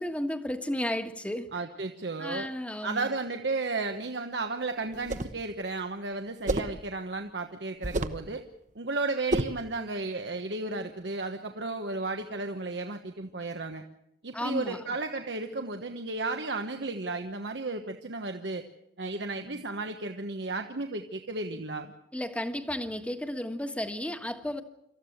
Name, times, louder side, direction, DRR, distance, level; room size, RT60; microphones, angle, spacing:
voice 1, 0.0-1.5 2.2-3.1 14.3-14.8 19.4-19.6 22.1-24.6, left 1 dB, 5° left, 7 dB, 1.4 m, -33 dB
voice 2, 1.5-2.5 2.8-8.4 8.7-13.8 14.2-18.6 19.0-21.9, right 3 dB, 80° right, 5 dB, 1.3 m, -34 dB
sound 1, 4.9-5.4 6.5-6.8 7.8-8.3 9.3-9.6, right 2 dB, 45° right, 1.1 m, -29 dB
26.0 x 14.0 x 8.0 m, 0.82 s
head